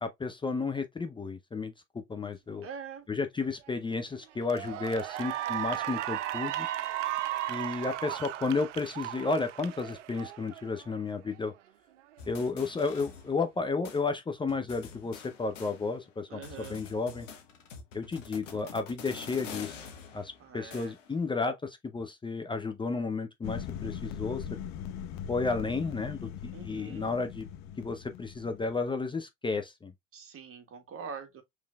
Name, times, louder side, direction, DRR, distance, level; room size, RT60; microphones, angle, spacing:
voice 1, 0.0-2.7 3.1-6.7 7.5-11.5 12.3-17.3 17.9-19.8 20.1-24.5 25.3-27.5 27.8-29.9, left 4 dB, 15° left, 0.6 m, -32 dB
voice 2, 2.6-3.0 16.3-16.8 20.4-20.9 26.5-27.1 30.1-31.4, right 6 dB, 35° right, 1.6 m, -44 dB
Cheering / Applause, 3.7-3.9 4.4-10.9, right 13 dB, 80° right, 0.5 m, -35 dB
sound 1, 12.2-13.6 13.8-14.0 14.5-16.1 16.4-21.2, left 6 dB, 85° left, 1.1 m, -46 dB
sound 2, 23.4-28.8, left 8 dB, 50° left, 0.8 m, -40 dB
5.5 x 3.3 x 2.3 m
hypercardioid pair, 75°, 36 cm